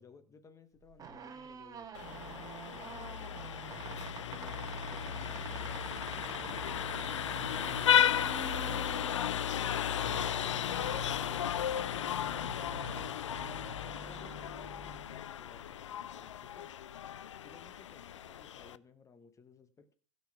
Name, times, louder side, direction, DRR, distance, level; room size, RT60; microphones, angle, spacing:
voice 1, 0.0-1.9 2.7-3.9 4.2-9.5 11.9-16.8 17.4-20.0, left 5 dB, 20° left, 11 dB, 1.2 m, -58 dB
sound 1, 0.8-15.5, right 5 dB, 20° right, 1.4 m, -47 dB
Vehicle horn car horn honking, 1.9-18.8, left 10 dB, 70° left, 0.5 m, -34 dB
16.0 x 5.5 x 5.9 m, 0.42 s
figure-of-eight pair, 90°, 16 cm